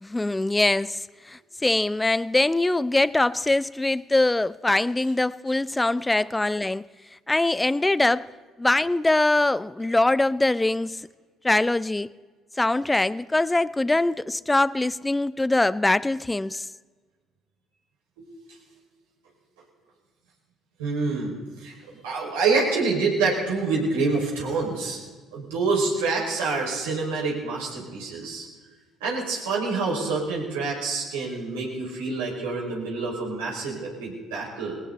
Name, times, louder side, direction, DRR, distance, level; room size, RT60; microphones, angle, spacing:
voice 1, 0.0-1.0 1.3-6.8 7.3-8.3 8.6-11.0 11.4-12.1 12.6-16.6, left 2 dB, 15° left, 0.6 m, -23 dB
voice 2, 20.8-21.3 21.6-21.7 22.0-25.0 25.3-28.5 29.0-34.8, right 4 dB, 85° right, 5.6 m, -26 dB
19.0 x 18.0 x 4.1 m
hypercardioid pair, 65°, 0 cm